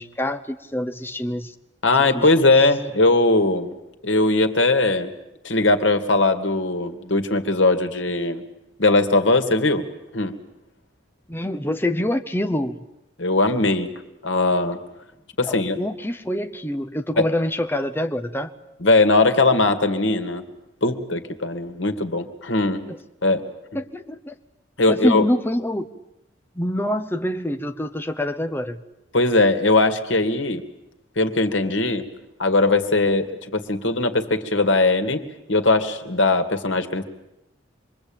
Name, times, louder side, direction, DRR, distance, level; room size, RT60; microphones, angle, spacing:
voice 1, 0.0-1.5 2.1-2.3 11.3-12.8 15.4-18.5 22.9-23.0 23.7-24.3 24.9-25.9 26.6-28.8, left 1 dB, 10° left, 7 dB, 1.0 m, -26 dB
voice 2, 1.8-3.8 4.0-5.1 5.4-8.4 8.8-9.9 10.1-10.4 13.2-13.9 14.2-14.8 15.4-15.8 17.2-17.3 18.8-20.4 20.8-22.9 23.2-23.4 24.8-25.3 29.1-30.6 31.2-32.1 32.4-35.2 35.5-37.0, left 2 dB, 85° left, 8 dB, 2.3 m, -20 dB
27.0 x 23.0 x 8.9 m, 0.87 s
head